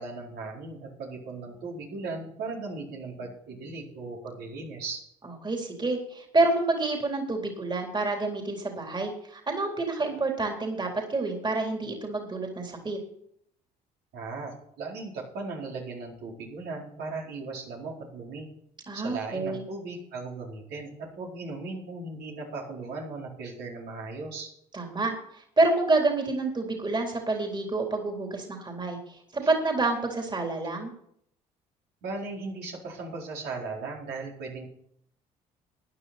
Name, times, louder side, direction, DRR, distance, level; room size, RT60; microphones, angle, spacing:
voice 1, 0.0-5.0 14.1-18.5 18.9-24.5 32.0-34.7, right 3 dB, 70° right, -3 dB, 4.4 m, -37 dB
voice 2, 5.2-13.0 18.9-19.7 24.7-25.1 25.6-30.9, right 2 dB, 25° right, 2 dB, 3.8 m, -28 dB
15.0 x 10.0 x 4.3 m, 0.68 s
hypercardioid pair, 60°, 18 cm